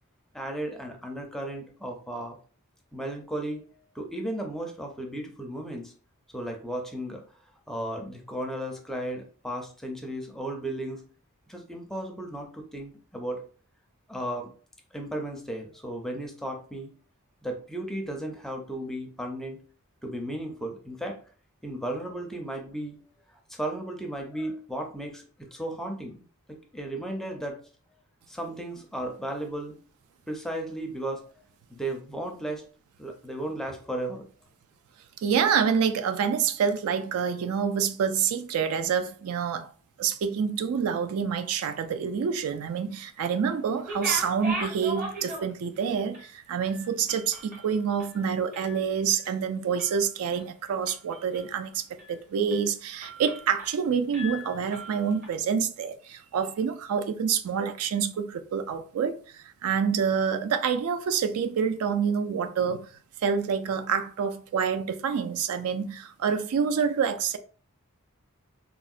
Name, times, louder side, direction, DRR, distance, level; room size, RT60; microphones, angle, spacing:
voice 1, 0.3-2.4 2.9-3.6 3.9-5.9 6.3-7.2 7.7-11.0 11.5-13.5 14.1-14.5 14.9-16.9 17.4-19.6 20.0-21.2 21.6-23.0 23.5-26.2 26.5-27.6 28.3-29.7 30.3-31.3 31.7-32.6 33.0-34.2, right 1 dB, ahead, 0.4 m, -35 dB
voice 2, 35.2-39.7 40.0-62.9 63.2-67.4, right 7 dB, 75° right, 0.3 m, -27 dB
sound 1, 43.7-45.8 46.1-46.3 46.6-48.8 49.1-49.4 49.8-50.4 50.9-51.6 52.0-52.1 52.5-52.7 53.0-53.8 54.1-55.3, right 1 dB, 40° right, 0.8 m, -38 dB
3.6 x 2.1 x 2.4 m
head